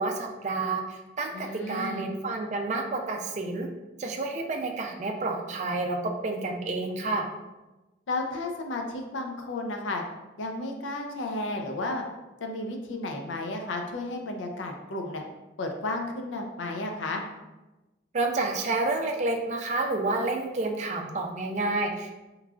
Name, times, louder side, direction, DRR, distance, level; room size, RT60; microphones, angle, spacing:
voice 1, 0.0-3.7 4.0-6.0 6.2-7.3 18.1-22.1, right 2 dB, 40° right, 2 dB, 0.4 m, -29 dB
voice 2, 1.3-2.1 8.1-10.0 10.4-12.0 12.4-15.2 15.6-17.2, left 2 dB, 90° left, 3 dB, 0.5 m, -33 dB
3.6 x 3.1 x 2.3 m, 1.1 s
head